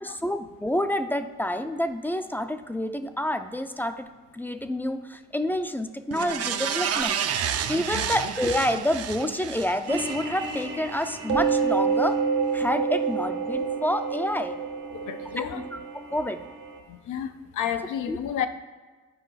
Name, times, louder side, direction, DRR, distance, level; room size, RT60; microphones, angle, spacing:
voice 1, 0.0-4.1 4.3-7.2 7.7-12.2 12.5-14.6 15.5-16.4 18.1-18.2, left 1 dB, 5° left, 9 dB, 0.4 m, -28 dB
sound 1, 6.1-10.6 11.0-11.1, right 8 dB, 55° right, 0.6 m, -30 dB
sound 2, 9.9-16.8, right 5 dB, 75° right, 1.4 m, -28 dB
voice 2, 14.9-15.6 16.9-18.5, left 9 dB, 80° left, 9 dB, 0.6 m, -31 dB
9.2 x 5.0 x 4.0 m, 1.4 s
cardioid pair, 90°, 30 cm